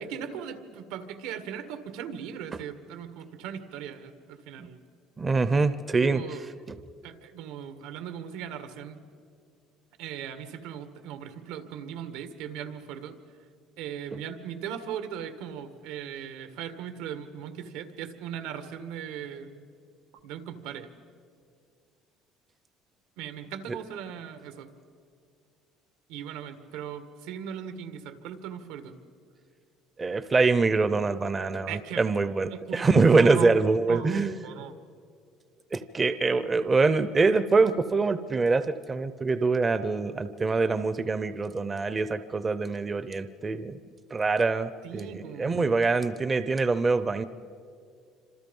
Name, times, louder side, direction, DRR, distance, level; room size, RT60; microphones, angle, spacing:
voice 1, 0.0-4.8 6.0-6.4 7.0-9.0 10.0-13.2 13.8-19.7 20.2-20.9 23.2-24.7 26.1-29.0 31.7-32.1 32.5-33.6 33.9-34.7 44.8-45.8, right 9 dB, 90° right, 9 dB, 1.7 m, -38 dB
voice 2, 5.2-6.2 30.0-34.4 35.7-43.8 44.1-47.2, right 3 dB, 15° right, 13 dB, 0.5 m, -24 dB
28.0 x 26.5 x 5.4 m, 2.2 s
cardioid pair, 180°, 0 cm